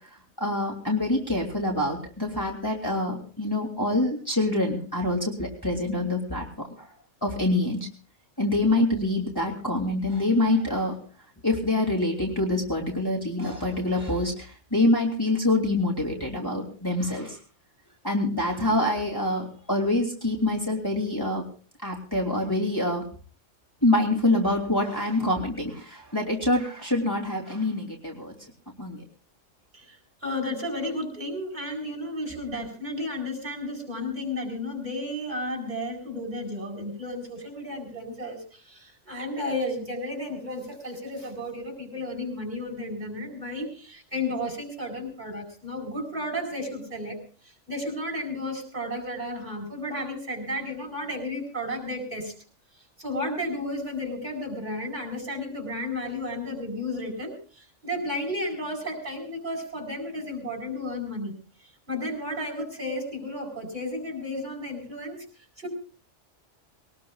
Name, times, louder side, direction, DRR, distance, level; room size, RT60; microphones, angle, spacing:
voice 1, 0.4-6.9 7.2-7.9 8.4-11.0 11.4-17.4 18.0-21.5 21.8-23.0 23.8-28.3 28.8-29.0, left 1 dB, 15° left, -2 dB, 2.9 m, -26 dB
voice 2, 29.7-47.2 47.4-52.3 53.0-61.3 61.9-65.2 65.6-65.7, left 1 dB, 40° right, 3 dB, 4.9 m, -33 dB
22.5 x 19.0 x 2.4 m, 0.38 s
omnidirectional pair, 1.3 m